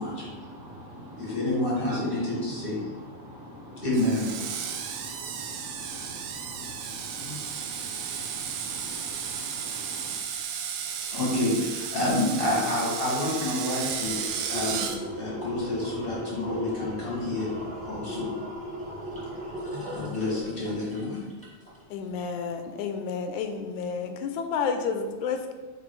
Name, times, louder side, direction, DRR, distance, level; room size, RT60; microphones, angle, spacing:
voice 1, 0.0-1.4 1.9-2.2 3.2-3.9 4.6-10.1, equal, 50° right, -6 dB, 1.9 m, -44 dB
voice 2, 1.2-2.8 3.8-4.3 7.2-7.4 11.1-14.2 14.5-14.9 15.1-17.5 17.8-18.3 19.9-21.2, left 1 dB, 30° left, -6 dB, 1.0 m, -28 dB
Screech, 3.9-15.0, right 7 dB, 85° right, 2.0 m, -34 dB
sound 1, 13.0-21.8 22.2-22.3, equal, 5° left, 1.0 m, -37 dB
voice 3, 21.9-25.5, left 5 dB, 85° left, 6 dB, 2.0 m, -30 dB
6.0 x 3.6 x 4.7 m, 1.3 s
omnidirectional pair, 3.3 m